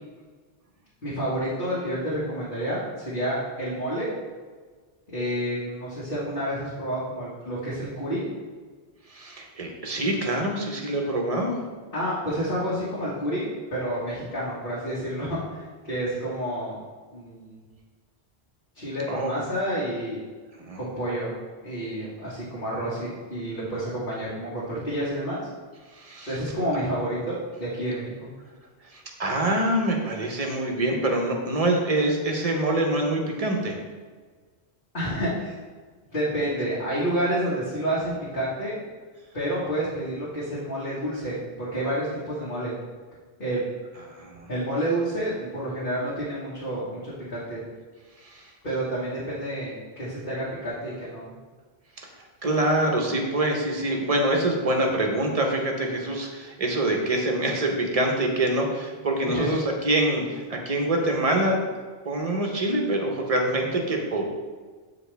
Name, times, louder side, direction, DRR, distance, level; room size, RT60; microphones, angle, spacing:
voice 1, 1.0-4.1 5.1-8.3 11.9-16.8 17.1-17.6 18.8-20.2 20.8-21.3 21.6-25.4 26.3-28.1 34.9-35.5 36.1-38.8 39.3-42.7 43.4-43.6 44.5-47.6 48.6-51.3 59.3-59.5, right 1 dB, 50° left, -9 dB, 1.8 m, -29 dB
voice 2, 9.1-11.6 19.1-19.3 20.6-20.8 25.9-26.3 28.9-33.8 44.1-44.5 48.2-48.5 52.0-52.1 52.4-61.6 62.0-64.3, right 1 dB, 35° right, 1 dB, 1.0 m, -25 dB
8.0 x 4.8 x 3.4 m, 1.5 s
omnidirectional pair, 1.1 m